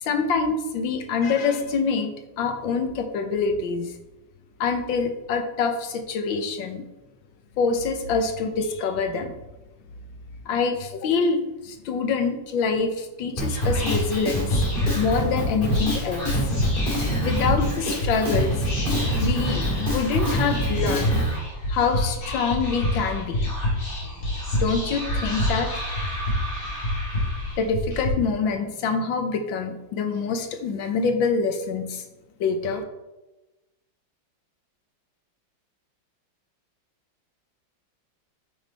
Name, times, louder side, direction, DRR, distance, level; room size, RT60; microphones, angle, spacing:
voice 1, 0.0-3.9 4.6-6.8 7.6-9.3 10.4-14.6 14.9-16.3 17.2-18.7 19.2-21.1 21.7-23.4 24.5-25.7 27.6-32.0 32.4-32.8, left 5 dB, 85° left, 6 dB, 1.6 m, -25 dB
Whispering, 13.4-28.1, left 1 dB, 45° left, 3.0 m, -27 dB
Drum kit, 13.4-21.3, equal, 25° left, 2.3 m, -26 dB
8.7 x 5.2 x 4.1 m, 1.0 s
omnidirectional pair, 2.0 m